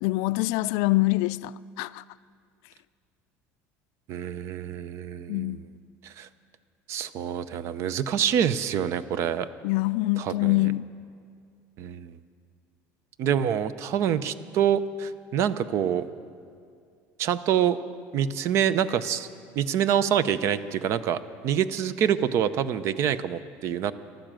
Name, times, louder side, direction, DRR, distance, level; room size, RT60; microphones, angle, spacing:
voice 1, 0.0-1.5 1.8-2.0 5.3-5.6 9.6-10.9, left 20 dB, 75° left, 0.3 m, -24 dB
voice 2, 4.1-5.6 6.0-6.3 6.9-9.5 10.2-10.7 11.8-12.2 13.2-16.1 17.2-17.8 18.1-19.3 19.6-23.9, right 9 dB, 50° right, 0.6 m, -26 dB
15.0 x 12.0 x 7.6 m
cardioid pair, 140°, 6 cm